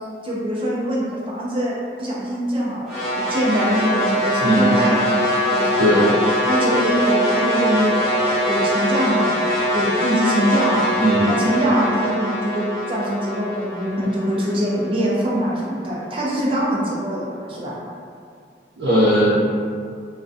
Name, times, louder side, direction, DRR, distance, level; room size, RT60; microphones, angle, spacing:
voice 1, 0.2-6.1 6.4-10.9 11.3-17.8, equal, 30° right, -5 dB, 0.4 m, -23 dB
sound 1, 2.9-15.1, equal, ahead, 0.8 m, -22 dB
voice 2, 4.4-4.7 5.8-6.1 11.0-11.3 18.8-19.4, equal, 80° right, -10 dB, 0.5 m, -17 dB
2.4 x 2.2 x 2.5 m, 2.2 s
head